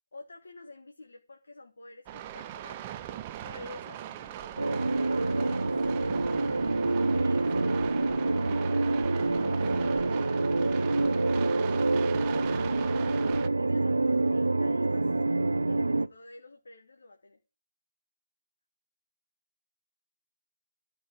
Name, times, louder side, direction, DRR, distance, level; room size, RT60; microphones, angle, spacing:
voice 1, 0.1-3.1 3.4-6.7 7.1-9.7 12.2-15.1 15.7-17.4, left 2 dB, 55° left, 4 dB, 1.4 m, -50 dB
sound 1, 2.1-13.5, right 11 dB, 20° right, 0.5 m, -41 dB
sound 2, 4.6-16.1, right 2 dB, 65° right, 0.5 m, -27 dB
11.5 x 4.6 x 7.4 m, 0.36 s
figure-of-eight pair, 150°, 0 cm